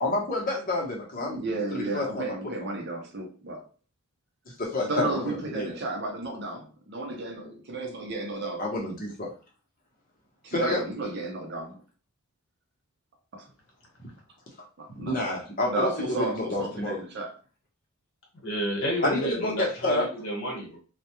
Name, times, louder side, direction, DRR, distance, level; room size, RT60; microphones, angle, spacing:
voice 1, 0.0-1.4 1.7-2.4 4.6-5.8 8.6-9.3 10.5-10.8 14.0-14.1 15.0-17.0 19.0-20.0, left 2 dB, 40° left, 0.8 m, -29 dB
voice 2, 1.2-3.7 4.8-8.7 10.4-11.8 13.3-13.5 14.8-15.2 15.7-17.3, right 2 dB, 50° right, 0.6 m, -33 dB
voice 3, 18.4-20.8, equal, 65° left, 1.1 m, -30 dB
2.2 x 2.1 x 2.8 m
head